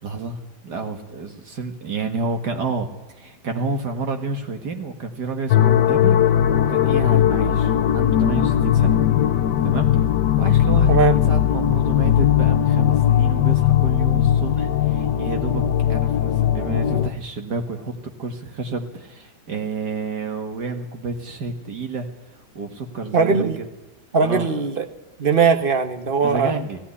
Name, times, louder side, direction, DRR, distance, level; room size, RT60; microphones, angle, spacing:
voice 1, 0.0-6.3 6.7-9.0 9.6-9.9 10.4-22.1 22.6-23.7 24.2-24.5 26.2-26.8, right 3 dB, 65° right, 5 dB, 2.4 m, -30 dB
sound 1, 5.5-17.1, left 10 dB, 70° left, 1.5 m, -18 dB
voice 2, 10.9-11.2 23.1-23.6 24.1-24.9 25.2-26.6, right 5 dB, 35° right, 7 dB, 1.4 m, -19 dB
17.5 x 16.5 x 9.9 m, 1.1 s
omnidirectional pair, 1.9 m